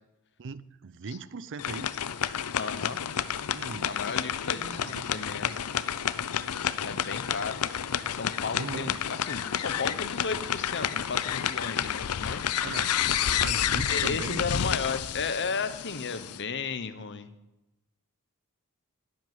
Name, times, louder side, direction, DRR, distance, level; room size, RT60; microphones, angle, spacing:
voice 1, 0.4-1.9 3.5-4.2 4.5-5.4 8.5-9.0 9.3-9.4 12.6-12.9 13.4-14.5, right 4 dB, 55° right, 17 dB, 0.5 m, -39 dB
sound 1, 1.6-16.4, left 9 dB, 90° left, 0.6 m, -30 dB
voice 2, 2.5-3.0 3.8-5.6 6.8-7.6 8.1-12.5 13.9-17.3, left 5 dB, 55° left, 12 dB, 1.0 m, -34 dB
11.5 x 8.0 x 9.3 m, 0.98 s
head